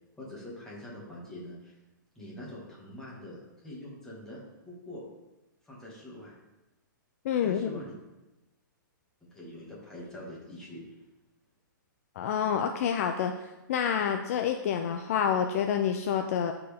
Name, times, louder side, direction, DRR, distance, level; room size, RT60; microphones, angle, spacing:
voice 1, 0.2-1.7 2.2-5.0 5.6-6.3 7.4-7.9 9.3-10.8, left 1 dB, 5° left, -6 dB, 2.1 m, -44 dB
voice 2, 7.2-7.7 12.2-16.5, left 8 dB, 45° left, 5 dB, 0.5 m, -28 dB
12.5 x 4.5 x 3.6 m, 1.0 s
hypercardioid pair, 160°, 11 cm